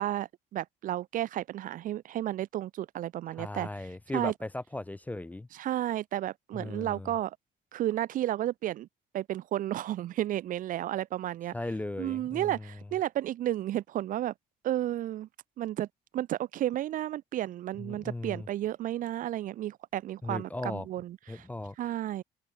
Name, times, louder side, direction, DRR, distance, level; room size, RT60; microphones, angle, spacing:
voice 1, 0.0-3.7 4.1-4.3 5.5-7.4 7.7-8.9 9.1-11.5 12.0-14.3 14.6-15.3 15.6-15.9 16.1-21.5 21.8-22.2, right 13 dB, 55° right, 0.4 m, -32 dB
voice 2, 3.4-5.5 6.5-7.1 11.5-12.6 17.8-18.5 20.2-20.9 21.3-21.8, left 2 dB, 10° left, 0.4 m, -37 dB
cardioid pair, 110°, 17 cm